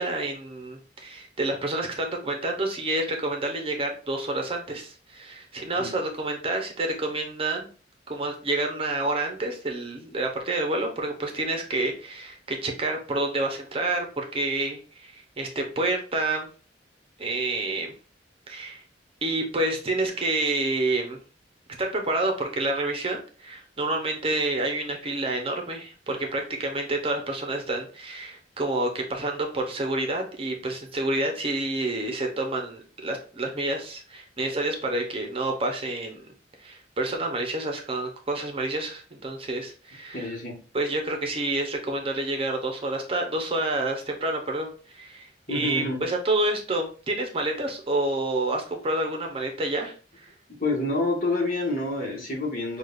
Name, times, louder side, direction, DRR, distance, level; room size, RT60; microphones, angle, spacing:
voice 1, 0.0-7.7 8.1-16.5 17.2-17.9 18.5-18.8 19.2-21.2 21.8-36.2 36.6-40.3 40.7-50.3, right 2 dB, 30° right, 3 dB, 0.8 m, -28 dB
voice 2, 40.1-40.6 45.5-46.0 50.6-52.8, left 2 dB, 50° left, -2 dB, 1.5 m, -28 dB
6.4 x 2.4 x 2.5 m, 0.38 s
head